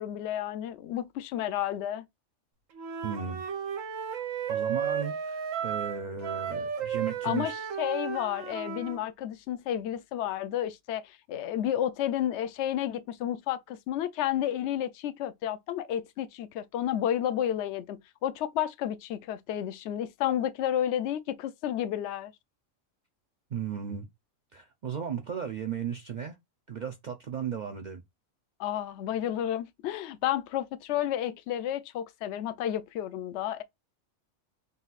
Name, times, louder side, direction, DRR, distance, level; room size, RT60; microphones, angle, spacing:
voice 1, 0.0-2.1 7.2-22.3 28.6-33.6, left 11 dB, 70° left, 0.8 m, -31 dB
Wind instrument woodwind instrument, 2.7-9.0, right 7 dB, 85° right, 1.2 m, -34 dB
voice 2, 3.0-3.4 4.5-7.6 23.5-24.1 24.5-26.4 26.7-28.0, right 7 dB, 60° right, 0.5 m, -35 dB
4.0 x 2.4 x 3.9 m
omnidirectional pair, 1.3 m